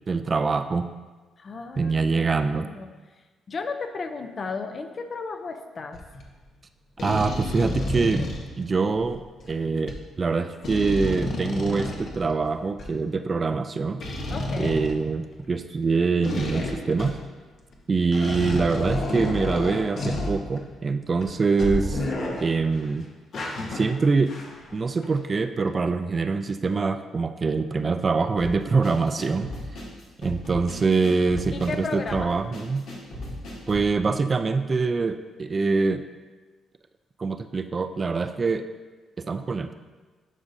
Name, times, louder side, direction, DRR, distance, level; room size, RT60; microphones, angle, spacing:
voice 1, 0.1-0.9 1.8-2.7 7.0-8.2 8.6-9.2 9.5-14.0 14.6-17.2 17.9-22.0 22.4-23.1 23.7-24.3 24.7-29.5 30.2-32.8 33.7-36.0 37.2-38.6 39.2-39.8, right 4 dB, 35° right, 9 dB, 0.3 m, -24 dB
voice 2, 1.4-2.9 3.5-6.0 14.3-14.8 31.5-32.3, left 4 dB, 45° left, 7 dB, 0.6 m, -34 dB
sound 1, 5.9-6.2 7.0-9.5 9.9-10.0 10.6-12.9 14.0-15.6 16.2-17.3 17.7-17.8 18.1-20.8 21.2-21.3 21.6-22.9 23.3-24.8 25.0-25.2, left 1 dB, 60° left, 1.1 m, -31 dB
sound 2, 28.4-33.9, left 1 dB, 85° left, 2.3 m, -37 dB
11.0 x 5.0 x 2.6 m, 1.3 s
cardioid pair, 90°, 0 cm